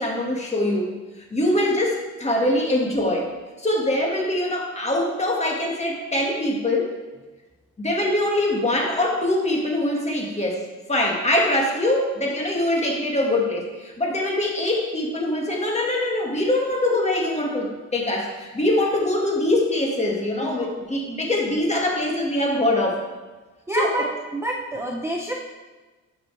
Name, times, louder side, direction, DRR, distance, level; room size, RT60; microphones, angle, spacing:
voice 1, 0.0-3.3 3.6-6.9 7.8-10.6 10.9-23.0 23.7-23.9, left 1 dB, 20° left, -1 dB, 1.9 m, -23 dB
voice 2, 23.7-24.1 24.3-25.3, right 1 dB, 10° right, 0 dB, 0.7 m, -27 dB
11.0 x 5.9 x 3.4 m, 1.2 s
cardioid pair, 90°, 30 cm